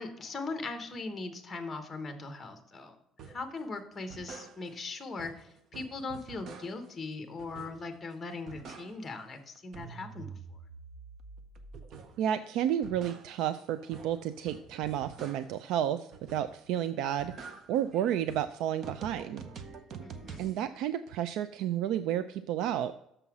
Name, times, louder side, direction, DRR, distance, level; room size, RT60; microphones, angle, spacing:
voice 1, 0.0-3.0 3.2-10.4 20.0-20.5, left 3 dB, 15° left, 7 dB, 1.0 m, -40 dB
sound 1, 3.2-3.5 3.9-4.9 5.2-7.0 7.4-8.0 8.3-9.3 9.6-12.3 12.7-15.7 16.1-16.7 17.0-20.6, right 5 dB, 40° right, 0.7 m, -47 dB
voice 2, 12.2-19.4 20.4-22.9, right 10 dB, 75° right, 11 dB, 0.3 m, -31 dB
6.7 x 5.5 x 6.0 m, 0.80 s
cardioid pair, 175°, 0 cm